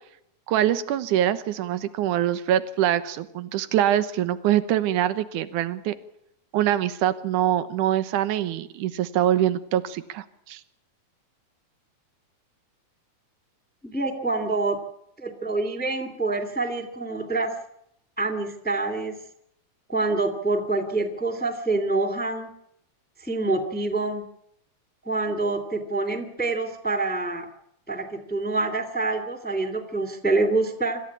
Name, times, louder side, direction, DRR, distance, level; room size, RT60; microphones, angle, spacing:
voice 1, 0.5-5.9 6.5-10.6, right 11 dB, 80° right, 13 dB, 2.6 m, -24 dB
voice 2, 13.8-14.8 15.2-17.5 18.2-19.2 19.9-22.5 23.2-24.3 25.0-27.5 27.9-31.0, right 3 dB, 5° left, 6 dB, 2.1 m, -26 dB
26.5 x 14.5 x 8.6 m, 0.78 s
omnidirectional pair, 3.6 m